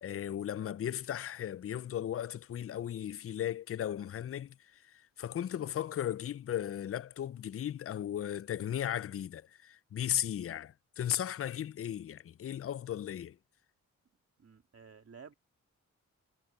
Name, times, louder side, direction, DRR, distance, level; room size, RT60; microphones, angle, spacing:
voice 1, 0.0-13.4, left 10 dB, 50° left, 0.4 m, -36 dB
voice 2, 14.4-15.4, right 6 dB, 50° right, 2.6 m, -53 dB
cardioid pair, 75°, 30 cm